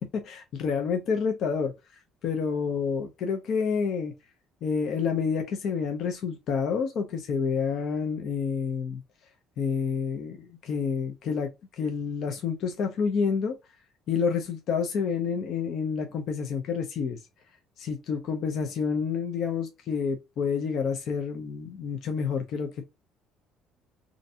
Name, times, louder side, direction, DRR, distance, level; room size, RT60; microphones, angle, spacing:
voice 1, 0.0-1.7 2.2-4.1 4.6-9.0 9.6-13.6 14.1-17.2 17.8-22.8, left 6 dB, 45° left, 0.4 m, -29 dB
2.5 x 2.1 x 2.7 m
cardioid pair, 165°, 0 cm